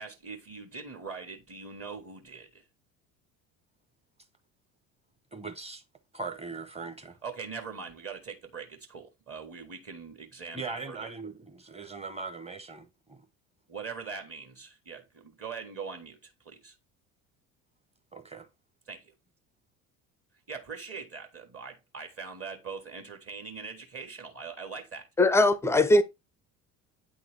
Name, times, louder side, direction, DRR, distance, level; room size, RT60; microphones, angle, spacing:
voice 1, 0.0-2.6 7.2-11.0 13.7-16.7 18.9-19.1 20.5-25.0, right 5 dB, 30° right, 1.5 m, -42 dB
voice 2, 5.3-5.8 6.1-7.2 10.5-13.2 18.1-18.5, right 4 dB, 15° right, 1.0 m, -40 dB
voice 3, 25.2-26.0, left 2 dB, 5° left, 0.4 m, -20 dB
8.9 x 3.8 x 3.4 m
figure-of-eight pair, 60°, 45 cm